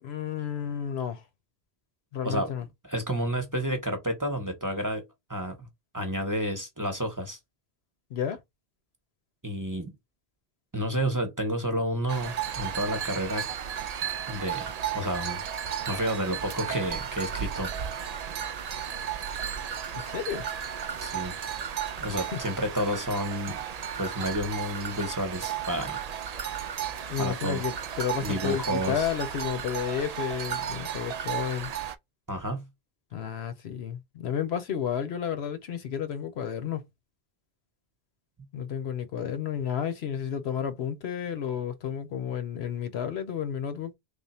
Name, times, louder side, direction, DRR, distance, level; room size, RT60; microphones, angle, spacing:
voice 1, 0.0-1.2 2.1-2.7 8.1-8.4 19.9-20.4 22.1-22.4 23.5-23.6 27.1-31.7 33.1-36.9 38.5-43.9, left 8 dB, 85° left, 1.0 m, -32 dB
voice 2, 2.9-5.0 5.3-5.7 5.9-7.4 9.4-9.9 10.7-13.4 14.3-15.4 15.9-17.9 21.0-21.3 22.0-23.6 24.0-26.0 27.2-27.6 28.2-29.0 32.3-32.6, equal, 20° right, 0.8 m, -30 dB
sound 1, 12.1-32.0, right 8 dB, 55° right, 0.5 m, -34 dB
3.5 x 2.3 x 4.1 m
omnidirectional pair, 1.0 m